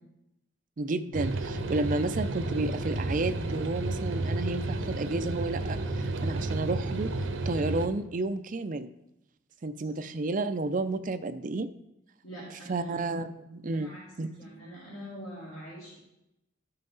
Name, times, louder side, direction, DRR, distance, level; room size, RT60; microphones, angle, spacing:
voice 1, 0.8-7.1 7.5-8.9 9.6-11.7 12.7-13.9 14.2-14.3 14.5-14.6, right 2 dB, 40° right, 10 dB, 0.4 m, -31 dB
sound 1, 1.1-7.9, right 2 dB, 75° right, 0.8 m, -32 dB
voice 2, 12.2-13.2 13.7-14.1 14.4-16.0, equal, 80° left, -8 dB, 3.5 m, -44 dB
13.0 x 5.7 x 3.9 m, 0.90 s
head